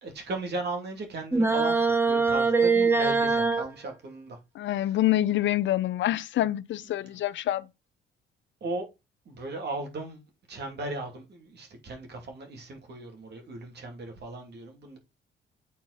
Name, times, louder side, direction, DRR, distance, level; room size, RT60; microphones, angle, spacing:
voice 1, 0.0-4.4 4.8-5.0 6.8-7.3 8.6-8.9 9.3-15.0, right 2 dB, 60° right, 2.7 m, -37 dB
sound 1, 1.3-3.7, right 4 dB, 10° right, 1.4 m, -23 dB
voice 2, 4.6-7.7, left 14 dB, 70° left, 0.6 m, -26 dB
8.2 x 4.6 x 4.2 m
cardioid pair, 90°, 20 cm